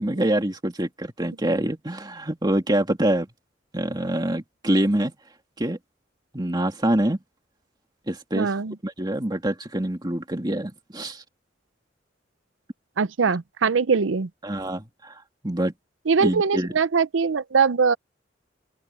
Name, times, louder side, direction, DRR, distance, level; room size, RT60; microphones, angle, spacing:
voice 1, 0.0-3.3 3.7-5.1 5.6-5.8 6.3-7.2 8.1-8.5 8.8-11.2 14.4-15.7 16.2-16.7, right 1 dB, 20° right, 2.5 m, -25 dB
voice 2, 8.3-8.8 13.0-14.3 16.1-18.0, right 5 dB, 90° right, 0.6 m, -22 dB
open air
head